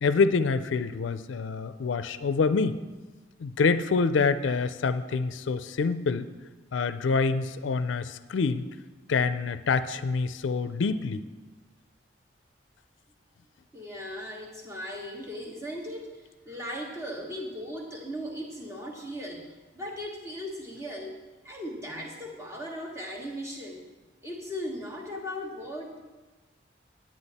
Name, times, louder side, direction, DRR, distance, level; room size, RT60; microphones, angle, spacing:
voice 1, 0.0-2.8 3.4-6.3 6.7-8.7 9.1-11.2, left 4 dB, 80° left, 13 dB, 0.4 m, -26 dB
voice 2, 13.7-21.2 21.4-23.8 24.2-26.0, equal, 15° right, -1 dB, 1.4 m, -38 dB
9.8 x 9.1 x 4.1 m, 1.2 s
head